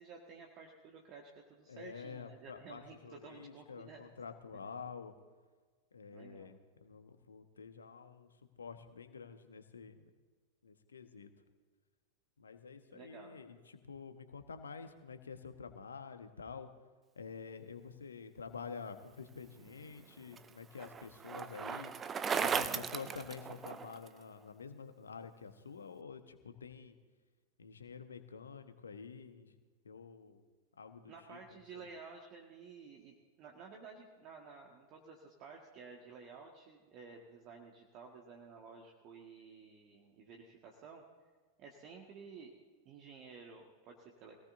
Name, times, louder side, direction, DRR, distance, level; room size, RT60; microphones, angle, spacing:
voice 1, 0.0-4.1 6.1-6.5 12.9-13.4 22.5-23.1 31.1-41.0 41.6-42.6 42.9-44.4, right 5 dB, 40° right, 0 dB, 1.8 m, -53 dB
voice 2, 1.7-5.1 5.9-8.3 8.6-10.1 10.6-11.3 12.4-16.7 17.1-21.9 22.3-27.0 27.6-29.5 29.8-30.4 30.8-31.4 31.7-31.9, left 5 dB, 70° left, 8 dB, 1.3 m, -48 dB
Bicycle, 19.7-24.1, right 6 dB, 20° right, 0.7 m, -37 dB
24.5 x 17.5 x 2.7 m, 1.4 s
figure-of-eight pair, 90°, 0 cm